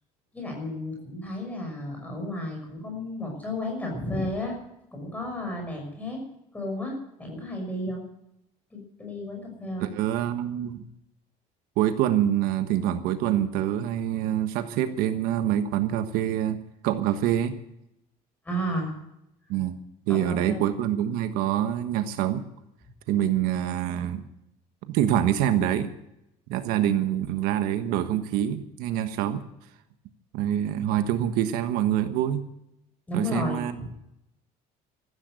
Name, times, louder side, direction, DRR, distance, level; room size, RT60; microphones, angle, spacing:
voice 1, 0.3-4.5 4.9-6.2 6.5-8.0 8.7-9.9 18.4-18.9 20.1-20.6 33.1-33.9, left 1 dB, 10° left, 1 dB, 6.0 m, -32 dB
voice 2, 9.8-10.8 11.8-16.6 16.8-17.5 19.5-19.8 20.1-22.4 23.1-24.2 24.9-25.9 26.5-29.4 30.3-32.4 33.1-33.8, right 11 dB, 75° right, 9 dB, 1.4 m, -25 dB
14.5 x 13.5 x 6.5 m, 0.83 s
cardioid pair, 160°, 15 cm